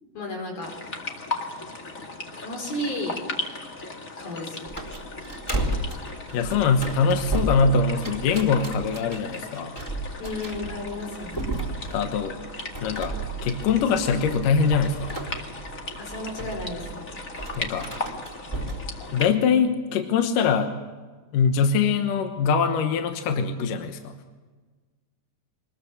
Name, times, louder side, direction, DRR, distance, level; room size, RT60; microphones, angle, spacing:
voice 1, 0.1-0.7 2.4-3.2 4.2-4.7 10.2-11.4 16.0-17.1, left 1 dB, 85° left, 2 dB, 6.6 m, -33 dB
sound 1, 0.6-19.3, left 3 dB, 30° left, 1.7 m, -37 dB
sound 2, 4.7-18.9, right 2 dB, 5° left, 3.1 m, -34 dB
voice 2, 6.3-9.7 11.9-12.4 12.8-13.1 13.4-15.2 17.6-17.9 19.1-20.7 21.3-24.1, left 5 dB, 70° left, 6 dB, 2.7 m, -23 dB
24.5 x 20.5 x 7.2 m, 1.4 s
omnidirectional pair, 4.1 m